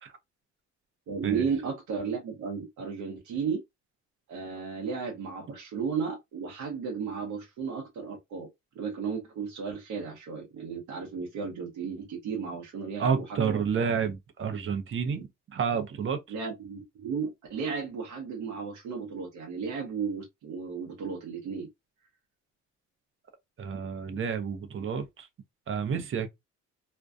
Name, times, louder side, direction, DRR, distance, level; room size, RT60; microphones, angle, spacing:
voice 1, 1.1-3.6 4.3-8.5 8.7-13.6 16.3-21.7, right 6 dB, 75° right, 0.8 m, -34 dB
voice 2, 13.0-15.3 15.5-16.2 23.6-25.3 25.7-26.3, right 6 dB, 45° right, 0.6 m, -30 dB
2.5 x 2.2 x 2.3 m
cardioid pair, 90°, 30 cm